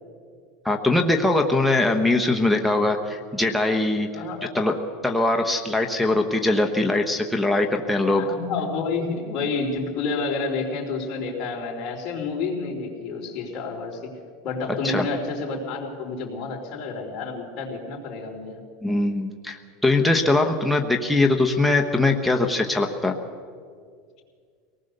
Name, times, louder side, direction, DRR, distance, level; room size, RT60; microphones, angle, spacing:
voice 1, 0.6-4.1 4.5-8.3 14.8-15.1 18.8-23.2, left 2 dB, ahead, 1 dB, 1.1 m, -22 dB
voice 2, 4.1-4.6 8.1-14.1 14.4-18.6, left 4 dB, 40° left, -1 dB, 4.0 m, -29 dB
23.5 x 19.0 x 6.7 m, 2.1 s
supercardioid pair, 150°, 0 cm